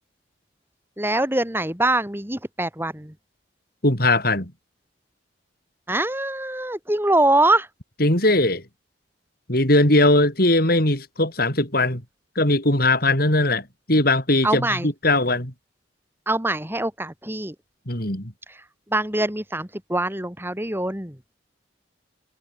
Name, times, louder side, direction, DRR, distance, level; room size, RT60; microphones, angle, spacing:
voice 1, 1.0-3.1 5.9-7.7 14.4-14.9 16.3-17.5 18.9-21.2, right 2 dB, 10° right, 5.8 m, -23 dB
voice 2, 3.8-4.5 8.0-8.6 9.5-12.0 12.4-15.5 17.9-18.3, left 2 dB, 55° left, 7.1 m, -20 dB
head